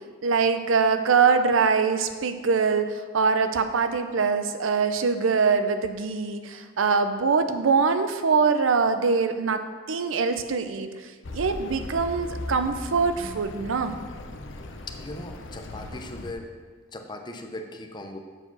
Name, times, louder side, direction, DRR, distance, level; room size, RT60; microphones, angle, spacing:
voice 1, 0.2-9.6 9.9-10.9 11.3-14.0, right 5 dB, 85° right, 9 dB, 0.6 m, -23 dB
Accelerating revving vroom, 11.2-16.3, left 1 dB, 65° left, 0.7 m, -38 dB
voice 2, 14.6-16.5 16.9-18.2, left 1 dB, 25° left, 4 dB, 0.7 m, -39 dB
7.8 x 4.8 x 6.1 m, 1.5 s
head